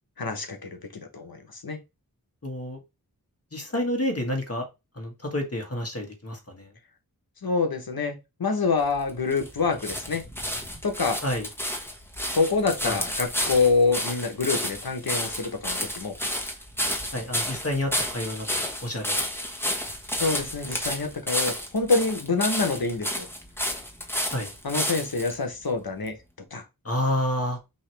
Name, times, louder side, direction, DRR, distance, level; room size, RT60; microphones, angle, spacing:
voice 1, 0.2-1.8 7.4-10.2 10.8-11.2 12.3-16.2 20.2-23.3 24.6-26.1 26.5-26.6, left 4 dB, 75° left, 1.0 m, -26 dB
voice 2, 2.4-2.8 3.5-4.6 4.9-6.7 11.2-11.5 12.8-13.0 17.1-19.3 24.3-24.5 26.8-27.6, left 1 dB, 40° left, 1.6 m, -29 dB
sound 1, 8.8-25.3 26.1-26.2, equal, 5° left, 1.4 m, -31 dB
5.4 x 2.9 x 3.3 m
wide cardioid pair, 45°, 36 cm